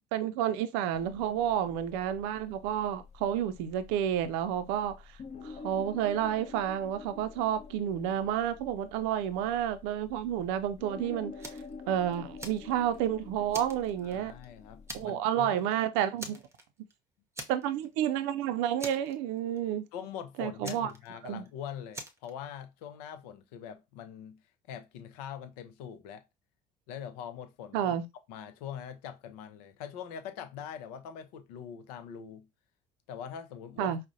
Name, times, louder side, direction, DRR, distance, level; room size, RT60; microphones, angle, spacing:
voice 1, 0.1-4.9 5.4-11.6 11.9-14.3 14.9-16.4 17.5-19.9 20.4-20.9 21.2-21.4 27.7-28.0 33.8-34.0, right 10 dB, 65° right, 0.5 m, -30 dB
sound 1, 0.9-15.1, left 4 dB, 35° left, 0.8 m, -48 dB
Fire, 11.4-11.7 12.1-13.1 13.5-14.4 14.9-15.3 15.6-15.7 16.2-16.9 17.3-17.9 18.2-18.3 18.8-19.6 20.6-21.5 21.9-22.3, right 1 dB, 15° right, 0.8 m, -43 dB
voice 2, 14.0-15.7 19.9-24.4 24.7-26.2 26.9-27.9 28.3-32.5 33.1-33.9, left 8 dB, 70° left, 0.7 m, -43 dB
4.8 x 2.2 x 2.5 m
hypercardioid pair, 60°, 21 cm